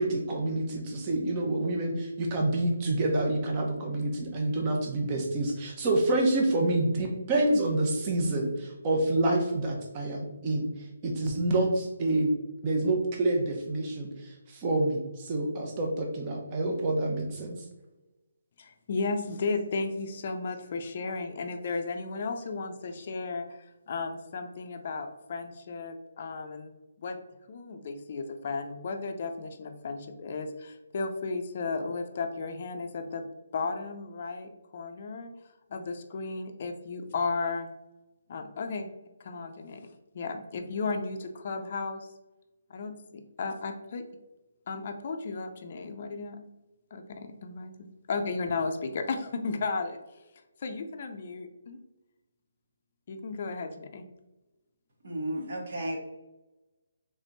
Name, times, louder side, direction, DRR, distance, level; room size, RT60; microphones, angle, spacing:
voice 1, 0.0-12.3 12.6-17.6, right 2 dB, 30° right, 1 dB, 1.0 m, -28 dB
voice 2, 18.6-26.7 27.0-27.2 27.5-33.3 33.5-35.3 35.7-37.7 38.3-38.9 39.2-39.9 40.1-42.1 42.7-44.1 44.7-46.4 46.9-47.7 48.1-50.2 50.6-51.8 53.1-54.0, left 4 dB, 50° left, 6 dB, 0.5 m, -34 dB
voice 3, 55.0-56.0, right 1 dB, 60° right, -1 dB, 1.4 m, -33 dB
3.4 x 3.4 x 4.0 m, 1.0 s
hypercardioid pair, 155°, 0 cm